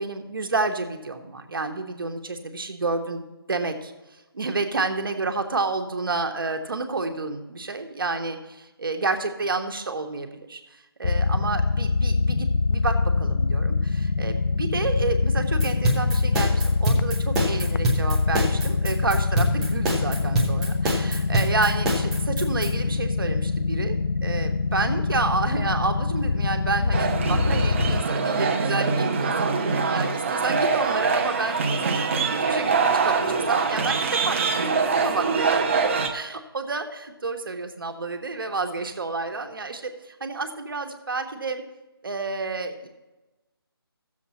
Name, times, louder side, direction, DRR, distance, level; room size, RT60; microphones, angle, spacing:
voice 1, 0.0-3.9 4.3-35.6 36.1-41.6 42.0-42.9, right 3 dB, 60° right, 5 dB, 1.4 m, -30 dB
sound 1, 11.0-28.0, left 4 dB, 65° left, 0.4 m, -24 dB
sound 2, 15.6-22.7, right 1 dB, ahead, 0.3 m, -25 dB
sound 3, 26.9-36.1, right 4 dB, 30° right, 0.8 m, -24 dB
15.0 x 7.2 x 4.2 m, 1.1 s
figure-of-eight pair, 160°, 13 cm